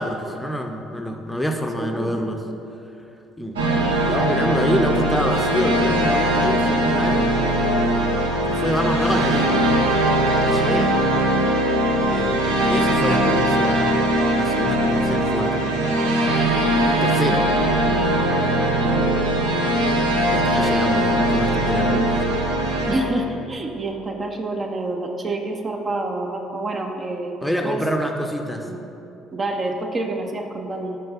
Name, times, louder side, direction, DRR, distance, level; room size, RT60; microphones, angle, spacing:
voice 1, 0.0-2.4 3.4-7.3 8.5-9.6 10.2-10.9 12.1-13.9 14.4-15.9 17.0-17.4 20.3-22.3 27.4-28.7, equal, 5° left, 3 dB, 0.7 m, -26 dB
voice 2, 1.8-2.2 18.8-19.1 20.5-20.9 22.9-27.8 28.6-28.8 29.3-31.0, right 2 dB, 35° right, 3 dB, 0.7 m, -28 dB
sound 1, 3.6-23.0, right 1 dB, 80° right, 0.8 m, -20 dB
5.5 x 5.3 x 5.4 m, 2.9 s
figure-of-eight pair, 55°, 0 cm